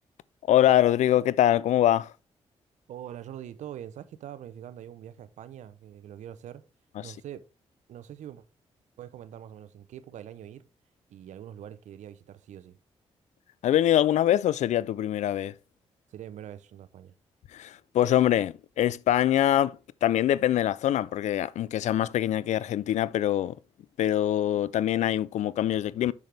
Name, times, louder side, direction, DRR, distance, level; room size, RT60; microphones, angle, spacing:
voice 1, 0.5-2.1 7.0-7.1 13.6-15.5 17.5-23.6 24.0-26.1, left 12 dB, 75° left, 0.4 m, -24 dB
voice 2, 2.9-6.6 7.0-7.4 7.9-8.4 9.0-10.6 11.1-12.8 16.1-17.1, right 10 dB, 80° right, 0.7 m, -43 dB
6.5 x 6.3 x 3.3 m
supercardioid pair, 55°, 12 cm